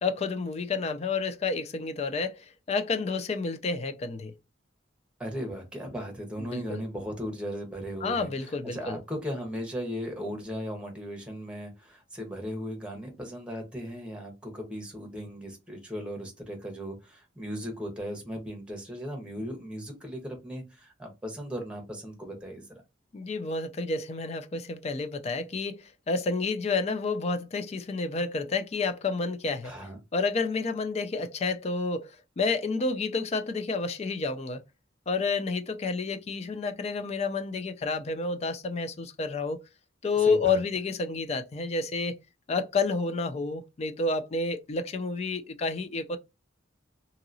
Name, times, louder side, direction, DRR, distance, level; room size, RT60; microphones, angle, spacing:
voice 1, 0.0-4.3 6.4-6.8 8.0-9.0 23.1-29.7 30.1-34.6 35.1-39.6 40.0-42.1 42.5-46.2, left 4 dB, 35° left, 0.3 m, -30 dB
voice 2, 5.2-22.8 29.6-30.0 40.3-40.6, equal, 5° right, 0.9 m, -37 dB
2.9 x 2.8 x 2.6 m
head